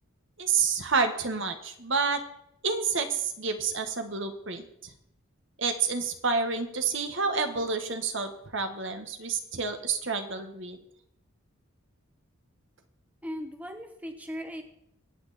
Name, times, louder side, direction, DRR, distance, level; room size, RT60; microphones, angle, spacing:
voice 1, 0.4-2.2 2.6-4.6 5.6-10.8, right 5 dB, 55° right, 6 dB, 1.6 m, -29 dB
voice 2, 13.2-14.6, equal, 5° right, 5 dB, 1.3 m, -38 dB
23.0 x 8.9 x 4.3 m, 0.75 s
head